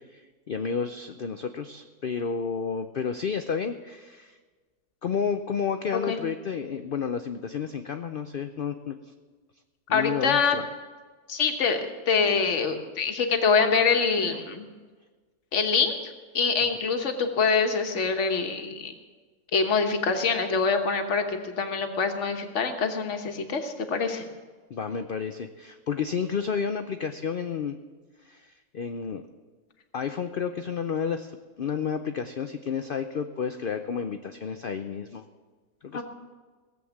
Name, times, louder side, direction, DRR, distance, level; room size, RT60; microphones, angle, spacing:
voice 1, 0.5-4.3 5.0-9.0 9.9-10.6 16.6-16.7 24.7-27.8 28.3-29.2 29.9-31.3 31.6-35.2 35.8-36.0, left 6 dB, 80° left, 8 dB, 0.4 m, -31 dB
voice 2, 9.9-10.6 11.3-14.7 15.5-18.9 19.5-24.3 35.9-36.0, left 5 dB, 50° left, 5 dB, 1.5 m, -25 dB
17.5 x 7.8 x 7.2 m, 1.4 s
omnidirectional pair, 1.7 m